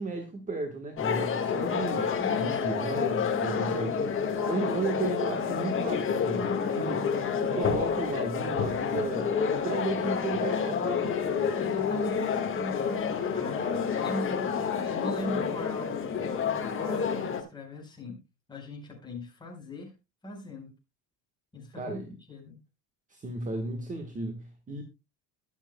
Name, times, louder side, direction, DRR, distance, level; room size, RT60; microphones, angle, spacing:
voice 1, 0.0-7.1 7.4-11.2 21.8-22.1 23.1-24.8, right 3 dB, 20° right, 1.3 m, -34 dB
sound 1, 1.0-17.4, left 6 dB, 30° left, 1.6 m, -29 dB
voice 2, 2.2-2.7 11.6-13.6 13.9-18.2 18.5-19.9 20.2-20.7 21.5-22.6, left 1 dB, 10° left, 4.8 m, -39 dB
21.5 x 7.4 x 2.2 m
cardioid pair, 175°, 41 cm